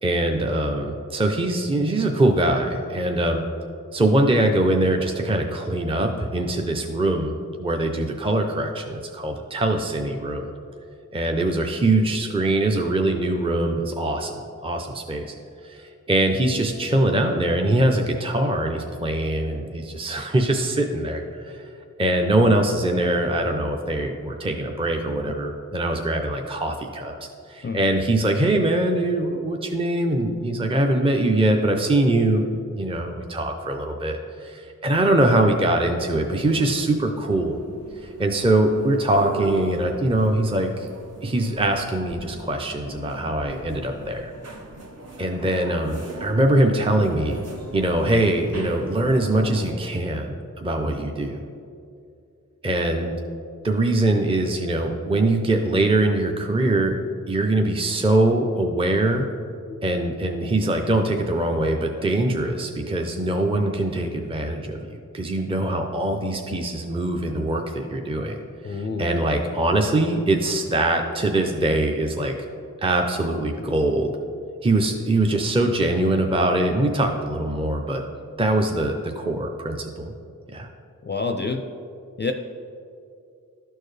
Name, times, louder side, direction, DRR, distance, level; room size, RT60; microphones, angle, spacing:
voice 1, 0.0-3.4 3.9-10.5 11.1-15.3 15.6-21.6 22.0-27.1 27.5-37.6 38.0-40.9 41.2-44.3 45.2-47.4 47.7-51.4 52.6-53.1 53.6-57.0 57.3-59.3 59.8-68.4 68.7-72.3 72.8-74.1 74.6-78.0 78.4-80.1 80.5-80.7, right 1 dB, 15° right, 3 dB, 0.6 m, -22 dB
sound 1, 36.1-49.7, right 2 dB, 50° right, 0.9 m, -40 dB
voice 2, 68.6-69.2 81.0-81.6 82.2-82.3, left 4 dB, 35° left, 5 dB, 0.4 m, -27 dB
12.0 x 4.5 x 3.2 m, 2.5 s
wide cardioid pair, 55°, 33 cm